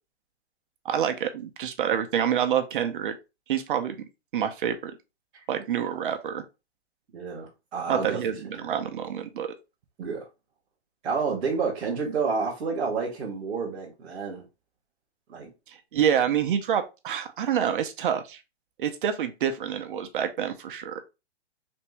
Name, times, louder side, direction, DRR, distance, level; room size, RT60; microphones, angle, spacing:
voice 1, 0.8-3.1 3.5-4.0 4.3-4.9 5.5-6.4 7.9-9.5 15.7-18.4 18.8-21.0, right 9 dB, 50° right, 0.5 m, -27 dB
voice 2, 7.1-8.2 8.6-8.7 10.0-10.2 11.0-14.4 15.3-15.5, right 5 dB, 5° right, 0.3 m, -29 dB
3.4 x 2.6 x 3.0 m
hypercardioid pair, 160°, 34 cm